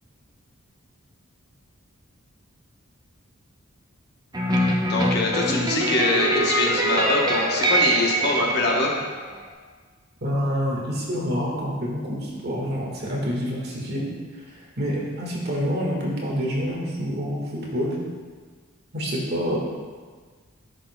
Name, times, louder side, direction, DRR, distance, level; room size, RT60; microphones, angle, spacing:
sound 1, 4.3-9.4, right 1 dB, 20° right, 0.6 m, -24 dB
voice 1, 4.8-8.9, left 2 dB, 50° left, -1 dB, 1.0 m, -23 dB
voice 2, 10.2-14.1 14.5-18.0 18.9-19.6, equal, 50° right, -3 dB, 1.6 m, -27 dB
10.0 x 6.3 x 2.2 m, 1.5 s
head